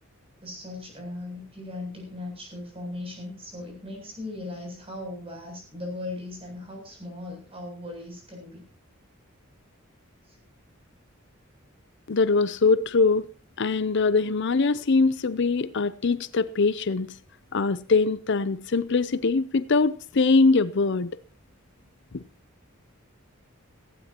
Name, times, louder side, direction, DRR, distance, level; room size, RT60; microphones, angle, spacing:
voice 1, 0.4-8.7 10.3-10.4, left 2 dB, 30° right, 7.9 m, -38 dB
voice 2, 12.1-13.3 13.6-17.1 17.5-21.1 22.1-22.2, left 4 dB, 55° left, 0.6 m, -22 dB
18.0 x 15.5 x 2.9 m
head